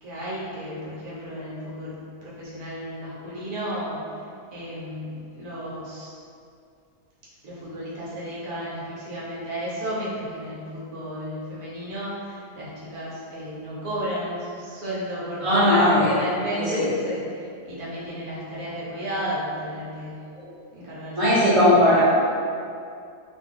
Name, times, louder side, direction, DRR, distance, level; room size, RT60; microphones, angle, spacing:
voice 1, 0.0-6.1 7.4-20.3 20.7-22.0, equal, 65° right, -7 dB, 1.3 m, -33 dB
voice 2, 15.4-16.1 16.5-16.9 20.4-20.5 21.2-22.0, left 1 dB, 30° right, -13 dB, 0.7 m, -18 dB
2.6 x 2.5 x 3.5 m, 2.4 s
omnidirectional pair, 1.7 m